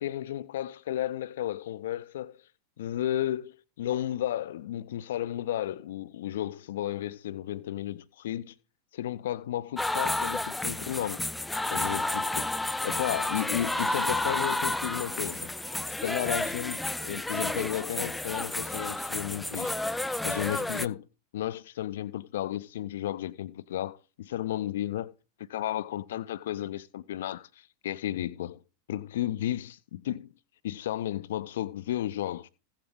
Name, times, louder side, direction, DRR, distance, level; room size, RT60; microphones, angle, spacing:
voice 1, 0.0-2.3 2.8-8.5 8.9-11.3 11.7-12.5 12.8-15.5 16.0-19.7 20.2-21.1 21.3-25.1 25.5-27.5 27.8-28.6 28.9-30.3 30.6-32.5, left 12 dB, 60° left, 0.7 m, -33 dB
sound 1, 9.8-20.9, left 2 dB, 5° left, 0.5 m, -31 dB
16.0 x 7.4 x 3.6 m
figure-of-eight pair, 90°, 0 cm